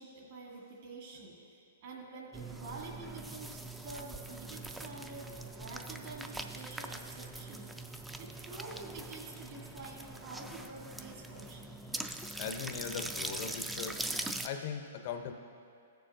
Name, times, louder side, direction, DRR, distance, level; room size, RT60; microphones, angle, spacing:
voice 1, 0.0-11.7, right 3 dB, 55° right, -3 dB, 1.9 m, -48 dB
sound 1, 2.3-14.5, right 2 dB, 5° right, 0.3 m, -42 dB
voice 2, 12.4-14.0 14.4-15.3, left 7 dB, 45° left, 6 dB, 0.5 m, -39 dB
15.0 x 6.8 x 2.5 m, 2.4 s
hypercardioid pair, 150°, 0 cm